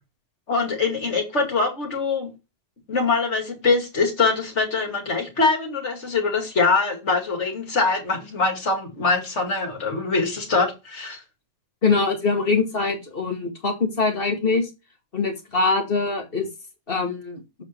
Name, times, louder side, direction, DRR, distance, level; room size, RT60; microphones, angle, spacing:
voice 1, 0.5-2.3 2.9-11.2, left 4 dB, 70° left, 2.5 m, -23 dB
voice 2, 11.8-14.7 15.1-16.5 16.9-17.4, left 4 dB, 50° left, 2.0 m, -23 dB
7.4 x 5.0 x 4.4 m
omnidirectional pair, 1.3 m